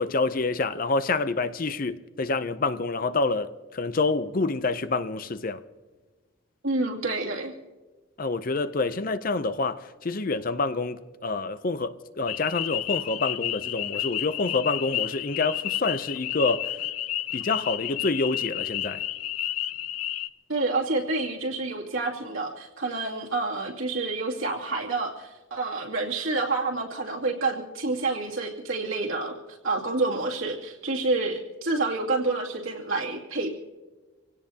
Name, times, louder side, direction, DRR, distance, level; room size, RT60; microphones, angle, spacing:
voice 1, 0.0-5.6 8.2-16.7 17.3-19.0, left 3 dB, 40° left, 0.5 m, -27 dB
voice 2, 6.6-7.5 20.5-33.5, right 3 dB, 70° right, 2.5 m, -28 dB
sound 1, 12.3-20.3, left 13 dB, 90° left, 0.5 m, -31 dB
27.0 x 17.0 x 2.8 m
head